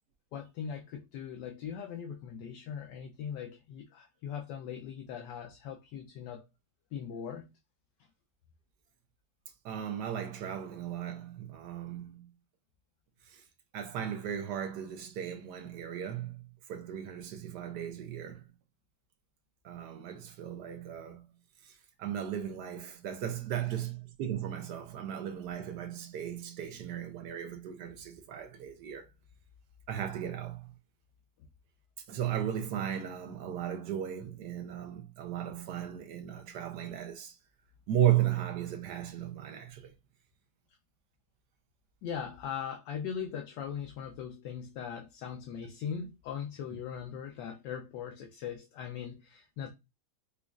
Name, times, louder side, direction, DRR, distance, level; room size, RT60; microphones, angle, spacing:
voice 1, 0.3-6.4 6.9-7.5 42.0-49.7, left 7 dB, 75° left, 1.2 m, -40 dB
voice 2, 9.6-12.3 13.3-13.4 13.7-18.4 19.6-21.2 22.0-29.1 29.9-30.7 32.1-37.3 37.9-39.9, right 10 dB, 70° right, 1.2 m, -35 dB
5.0 x 2.3 x 2.3 m
omnidirectional pair, 2.0 m